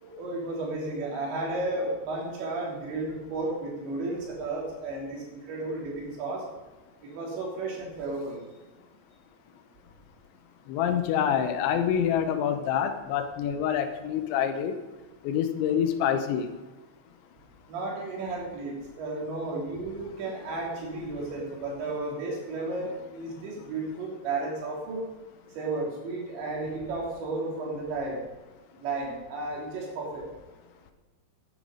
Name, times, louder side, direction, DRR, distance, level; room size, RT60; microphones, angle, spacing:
voice 1, 0.0-6.4 7.1-8.4 17.7-25.0 25.6-28.2 28.8-30.2, right 2 dB, 75° right, -3 dB, 5.3 m, -33 dB
voice 2, 10.7-14.8 15.2-16.5, left 8 dB, 85° left, 8 dB, 3.3 m, -26 dB
12.0 x 10.0 x 5.3 m, 1.2 s
omnidirectional pair, 5.2 m